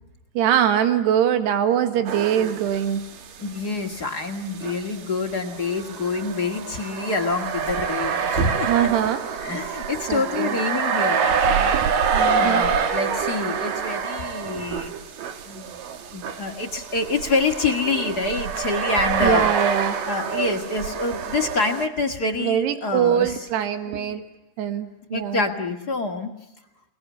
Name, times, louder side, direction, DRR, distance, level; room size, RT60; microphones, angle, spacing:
voice 1, 0.4-3.0 8.7-9.2 10.1-10.5 12.1-12.6 19.2-20.0 22.4-24.2 24.6-25.4, right 9 dB, 85° right, 8 dB, 3.7 m, -22 dB
sound 1, 2.1-3.2 3.5-3.6 4.6-21.9, right 6 dB, 60° right, 3.0 m, -26 dB
voice 2, 3.4-8.7 9.4-11.8 12.3-14.9 15.4-15.8 16.0-19.5 20.0-23.5 23.9-24.2 25.1-26.3, left 3 dB, 35° left, 3 dB, 1.6 m, -27 dB
29.0 x 19.5 x 9.6 m, 0.92 s
omnidirectional pair, 4.7 m